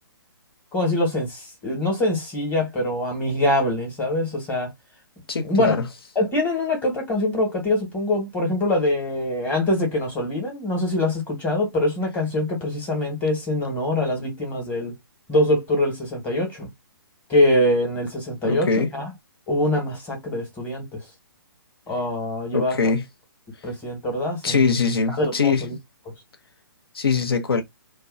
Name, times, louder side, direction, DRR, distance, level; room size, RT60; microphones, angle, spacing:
voice 1, 0.7-4.7 5.4-5.8 6.1-14.9 15.3-16.7 17.3-19.1 19.5-21.0 21.9-22.9 23.6-24.8 25.2-25.7, left 1 dB, 15° left, 1.1 m, -24 dB
voice 2, 5.3-5.8 18.4-18.9 22.5-23.0 24.4-25.6 26.9-27.6, left 5 dB, 80° left, 0.7 m, -22 dB
2.5 x 2.2 x 2.4 m
hypercardioid pair, 145°, 12 cm